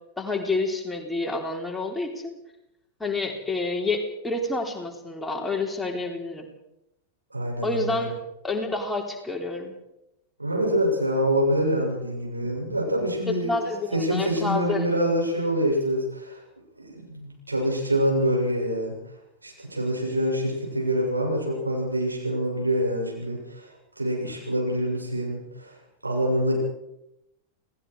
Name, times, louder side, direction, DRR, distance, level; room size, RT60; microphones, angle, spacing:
voice 1, 0.2-2.3 3.0-6.5 7.6-8.1 8.4-9.7 13.3-14.9, left 3 dB, 5° left, 1 dB, 4.0 m, -28 dB
voice 2, 7.3-8.0 10.4-13.6 13.9-16.4 16.8-18.9 19.4-25.8 26.0-26.6, equal, 80° right, -1 dB, 7.4 m, -26 dB
29.0 x 19.0 x 5.0 m, 0.83 s
figure-of-eight pair, 90°, 0 cm